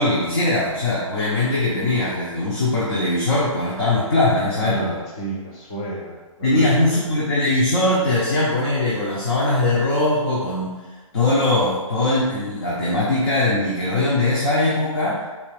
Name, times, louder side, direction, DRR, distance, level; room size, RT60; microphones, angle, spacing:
voice 1, 0.0-5.0 6.4-10.7 11.1-15.2, left 2 dB, 45° left, -6 dB, 0.8 m, -21 dB
voice 2, 4.5-7.1, right 3 dB, 10° left, -4 dB, 0.3 m, -32 dB
4.3 x 2.5 x 3.3 m, 1.3 s
hypercardioid pair, 165°, 18 cm